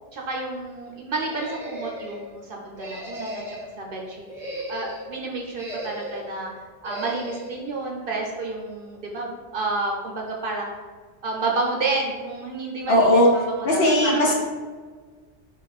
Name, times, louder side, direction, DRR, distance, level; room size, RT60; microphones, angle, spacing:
voice 1, 0.1-3.4 3.8-6.5 6.8-10.7 11.2-14.3, right 3 dB, 55° right, -1 dB, 0.8 m, -30 dB
sound 1, 1.3-2.2 2.8-3.7 4.2-5.1 5.5-6.3 6.8-7.5, equal, 5° right, 0.8 m, -36 dB
voice 2, 12.9-13.3 13.6-14.4, left 1 dB, 60° left, -1 dB, 1.0 m, -17 dB
4.2 x 3.0 x 4.1 m, 1.5 s
omnidirectional pair, 1.2 m